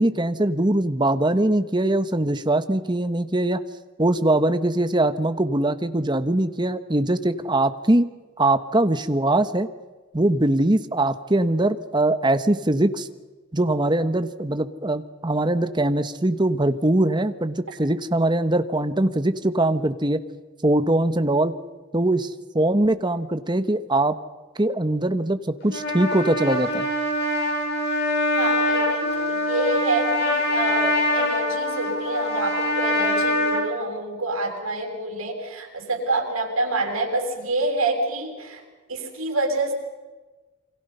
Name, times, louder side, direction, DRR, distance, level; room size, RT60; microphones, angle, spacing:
voice 1, 0.0-3.6 4.0-8.1 8.4-9.7 10.1-13.1 13.5-20.2 20.6-21.5 21.9-24.2 24.6-26.9, right 1 dB, 20° right, 10 dB, 1.2 m, -22 dB
Trumpet, 25.6-33.6, left 1 dB, 55° left, 6.8 m, -24 dB
voice 2, 28.4-38.6 38.9-39.7, right 2 dB, 85° right, 1 dB, 6.9 m, -27 dB
28.5 x 24.5 x 5.6 m, 1.3 s
head